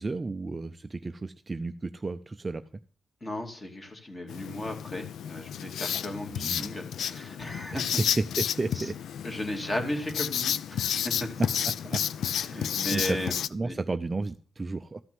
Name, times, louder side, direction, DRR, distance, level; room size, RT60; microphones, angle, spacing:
voice 1, 0.0-2.6 6.3-6.7 7.7-9.0 11.4-12.0 12.7-15.0, right 3 dB, 20° right, 9 dB, 0.5 m, -33 dB
voice 2, 3.2-8.0 8.7-8.9 9.2-11.3 12.3-13.8, left 1 dB, 20° left, 3 dB, 2.4 m, -35 dB
Writing, 4.3-13.5, left 9 dB, 75° left, 0.5 m, -31 dB
13.5 x 5.8 x 7.7 m, 0.43 s
wide cardioid pair, 155°, 0 cm